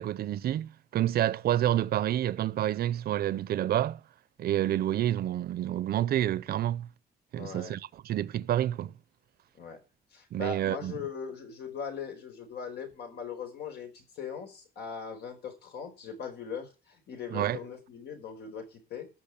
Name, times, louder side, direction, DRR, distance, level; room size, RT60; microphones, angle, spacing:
voice 1, 0.0-4.0 4.4-6.9 7.3-8.9 10.3-10.9 17.3-17.6, right 12 dB, 70° right, 0.6 m, -28 dB
voice 2, 7.4-7.8 9.5-9.8 10.1-19.1, left 6 dB, 85° left, 4.8 m, -40 dB
14.0 x 6.3 x 8.2 m
wide cardioid pair, 175°, 16 cm